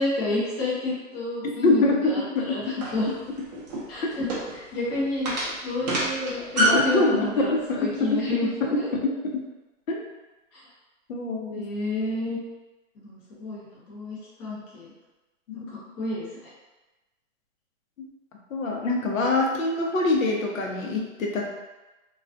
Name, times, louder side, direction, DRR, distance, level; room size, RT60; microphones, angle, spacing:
voice 1, 0.0-3.1 3.9-4.3 4.5-7.5 7.8-8.9 10.5-10.6 11.5-12.4 13.0-14.9 15.5-15.6 16.0-16.5, left 2 dB, 20° left, -7 dB, 0.5 m, -30 dB
voice 2, 1.6-2.5 4.0-4.1 6.6-8.2 8.6-9.1 9.9-10.0 11.1-11.7 15.5-15.6 18.5-21.5, left 2 dB, 85° left, 0 dB, 0.7 m, -24 dB
sound 1, 2.8-7.0, right 1 dB, 35° right, 0.5 m, -27 dB
2.3 x 2.2 x 2.4 m, 1.1 s
hypercardioid pair, 145°, 39 cm